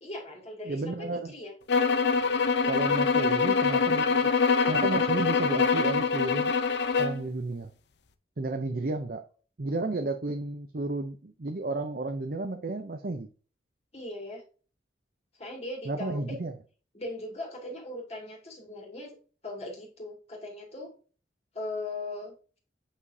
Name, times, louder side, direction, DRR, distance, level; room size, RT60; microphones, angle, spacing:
voice 1, 0.0-1.5 3.2-3.5 13.9-14.4 15.4-16.4 16.9-19.2 19.4-20.9 21.5-22.6, left 2 dB, 35° left, 2.3 m, -39 dB
voice 2, 0.6-1.3 2.7-4.3 4.7-6.5 7.0-7.7 8.4-9.2 9.6-13.3 15.9-16.5, right 2 dB, 50° right, 0.6 m, -32 dB
sound 1, 1.7-7.2, left 5 dB, 65° left, 0.7 m, -24 dB
8.3 x 5.1 x 2.7 m
head